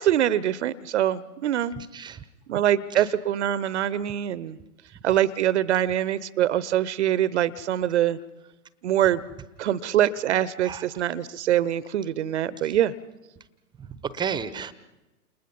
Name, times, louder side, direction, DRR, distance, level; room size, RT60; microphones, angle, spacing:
voice 1, 0.0-1.7 2.5-4.6 5.0-8.2 8.8-9.2 9.6-12.9, right 11 dB, 45° right, 20 dB, 0.9 m, -24 dB
voice 2, 1.8-2.2 3.0-3.1 10.6-10.8 13.8-14.7, right 7 dB, 10° right, 16 dB, 0.9 m, -32 dB
29.5 x 28.5 x 5.5 m, 1.0 s
figure-of-eight pair, 110°, 46 cm